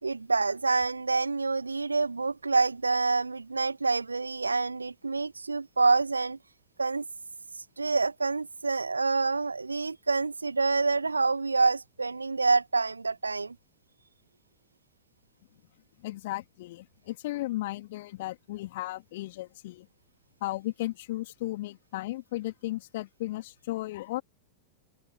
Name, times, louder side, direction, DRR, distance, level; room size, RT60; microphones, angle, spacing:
voice 1, 0.0-6.4 6.8-7.0 7.8-13.5, right 3 dB, 80° right, 2.0 m, -27 dB
voice 2, 16.0-19.9 20.4-24.2, left 17 dB, 55° left, 2.9 m, -35 dB
open air
figure-of-eight pair, 90°, 0 cm